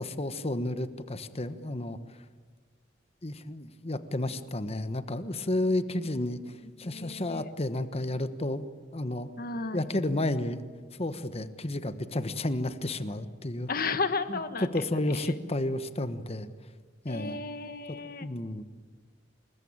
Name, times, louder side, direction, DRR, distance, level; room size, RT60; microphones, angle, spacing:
voice 1, 0.0-2.2 3.2-9.3 9.7-10.6 11.0-13.7 14.6-16.5 17.0-17.4 17.9-18.6, left 1 dB, 35° left, 11 dB, 1.2 m, -32 dB
voice 2, 6.6-7.5 9.4-9.9 13.7-15.2 17.1-18.3, left 4 dB, 50° left, 10 dB, 1.5 m, -34 dB
28.0 x 21.0 x 8.9 m, 1.5 s
head